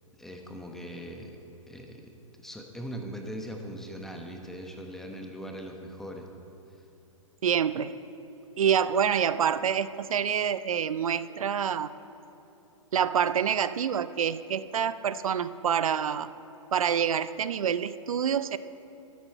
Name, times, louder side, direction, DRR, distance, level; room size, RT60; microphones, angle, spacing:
voice 1, 0.2-1.4 1.7-2.1 2.4-6.3, equal, ahead, 2 dB, 1.0 m, -40 dB
voice 2, 7.4-7.9 8.6-11.9 12.9-16.3 16.7-18.6, right 8 dB, 85° right, 15 dB, 0.5 m, -27 dB
12.5 x 9.9 x 4.5 m, 2.9 s
hypercardioid pair, 130°, 17 cm